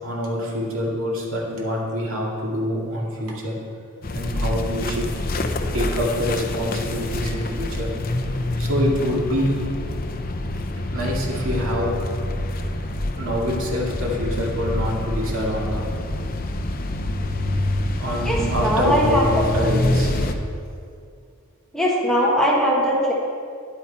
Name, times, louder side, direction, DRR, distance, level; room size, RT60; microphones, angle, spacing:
voice 1, 0.0-3.5 4.1-5.1 5.7-7.9 8.6-9.6 10.9-11.9 13.2-15.9 17.9-20.3, equal, 70° right, -3 dB, 2.3 m, -25 dB
sound 1, 4.0-20.3, left 1 dB, 45° left, 0.6 m, -26 dB
voice 2, 18.2-19.2 19.7-19.9 21.7-23.1, equal, 5° left, -4 dB, 1.4 m, -20 dB
11.0 x 9.0 x 4.3 m, 2.3 s
head